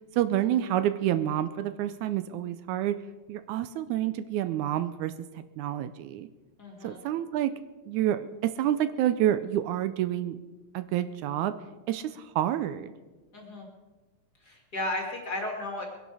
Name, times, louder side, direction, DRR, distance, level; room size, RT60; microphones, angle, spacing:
voice 1, 0.2-3.0 3.3-5.1 5.6-6.3 6.8-7.5 7.9-10.4 10.7-11.6 11.9-12.9, right 12 dB, 80° right, 11 dB, 2.0 m, -28 dB
voice 2, 6.6-7.0 13.3-13.7 14.4-15.8, left 1 dB, 35° left, 1 dB, 2.4 m, -34 dB
22.0 x 11.0 x 4.8 m, 1.2 s
omnidirectional pair, 3.5 m